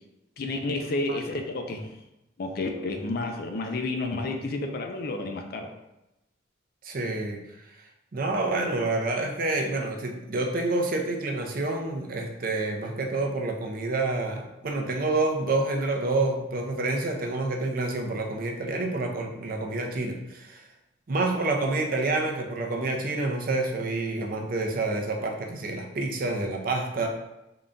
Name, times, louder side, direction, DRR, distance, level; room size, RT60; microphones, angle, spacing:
voice 1, 0.4-1.9 2.4-5.7, left 2 dB, 55° left, 4 dB, 0.4 m, -30 dB
voice 2, 6.8-7.4 8.1-20.6 21.1-27.1, right 2 dB, 50° right, 2 dB, 0.5 m, -28 dB
3.8 x 2.2 x 3.7 m, 0.92 s
head